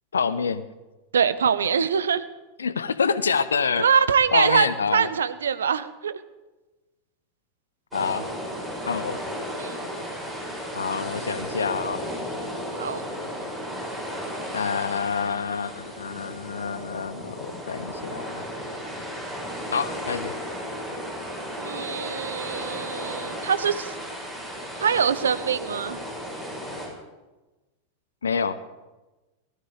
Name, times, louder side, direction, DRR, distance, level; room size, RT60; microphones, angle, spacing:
voice 1, 0.1-0.7 2.6-3.8 4.3-5.1 7.9-8.3 8.9-9.2 10.7-12.0 14.5-18.4 19.7-20.3 28.2-28.6, left 6 dB, 70° left, 14 dB, 0.8 m, -27 dB
voice 2, 1.1-2.2 3.8-4.7 4.9-6.2 9.6-9.8 12.8-13.0 21.5-23.9 24.8-26.0, right 7 dB, 65° right, 14 dB, 0.7 m, -23 dB
sound 1, 7.9-26.9, equal, 10° right, 6.5 m, -34 dB
18.0 x 13.0 x 5.0 m, 1.1 s
figure-of-eight pair, 90°, 0 cm